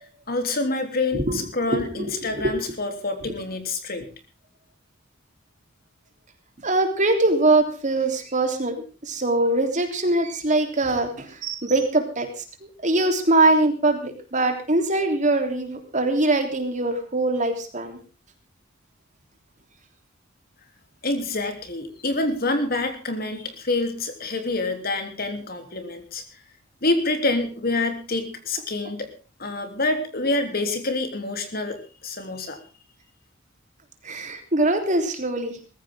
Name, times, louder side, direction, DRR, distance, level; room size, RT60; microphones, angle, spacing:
voice 1, 0.3-4.1 21.0-26.2 26.8-29.1 29.4-32.6, left 2 dB, 50° left, 7 dB, 3.2 m, -27 dB
voice 2, 1.1-2.5 6.6-8.7 9.0-18.0 34.0-35.6, right 2 dB, 40° right, 5 dB, 3.4 m, -23 dB
20.5 x 15.0 x 3.7 m, 0.34 s
head